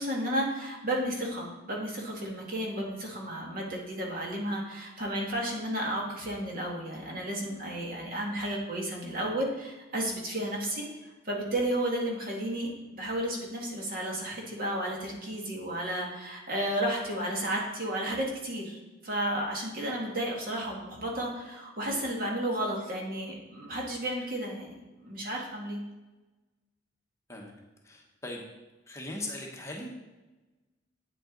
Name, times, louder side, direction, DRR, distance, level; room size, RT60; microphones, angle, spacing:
voice 1, 0.0-24.7 25.0-25.8, right 1 dB, 50° right, -2 dB, 2.0 m, -33 dB
voice 2, 27.8-28.4 28.9-29.9, left 1 dB, 15° left, 0 dB, 1.1 m, -39 dB
8.9 x 7.6 x 3.9 m, 1.1 s
head